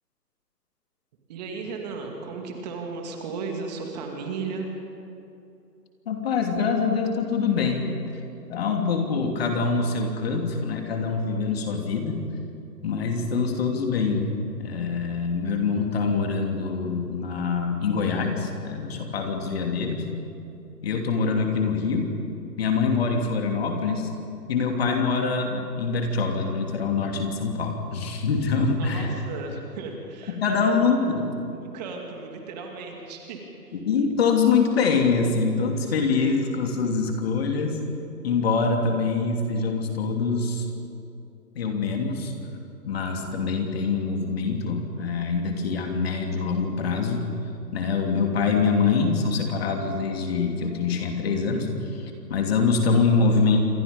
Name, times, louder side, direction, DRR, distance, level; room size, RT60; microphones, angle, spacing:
voice 1, 1.3-4.7 28.8-30.8 31.1-31.2 31.6-33.8, right 4 dB, 25° right, 2 dB, 2.6 m, -35 dB
voice 2, 6.1-7.9 8.5-12.2 12.8-14.3 14.6-20.0 20.8-22.1 22.6-24.1 24.5-29.1 30.3-31.3 33.8-37.8 38.2-40.7 41.5-42.3 42.8-47.3 47.7-53.6, left 4 dB, 35° left, 2 dB, 3.1 m, -24 dB
27.5 x 25.0 x 5.4 m, 2.7 s
figure-of-eight pair, 150°, 49 cm